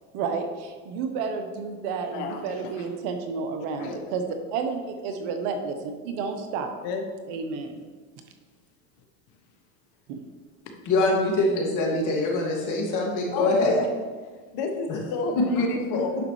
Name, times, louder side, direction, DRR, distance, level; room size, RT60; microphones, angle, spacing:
voice 1, 0.1-4.2 4.5-6.7 7.3-7.8 10.1-10.2, right 5 dB, 65° right, 6 dB, 1.2 m, -31 dB
voice 2, 2.1-2.9 3.8-4.0 6.8-7.4 10.7-10.8 11.9-12.0 13.3-13.9 14.5-16.2, left 4 dB, 60° left, 4 dB, 1.3 m, -31 dB
voice 3, 10.9-13.7 14.9-15.0 15.4-15.5, left 2 dB, 45° left, -1 dB, 2.2 m, -23 dB
9.7 x 6.5 x 3.2 m, 1.5 s
supercardioid pair, 105°, 41 cm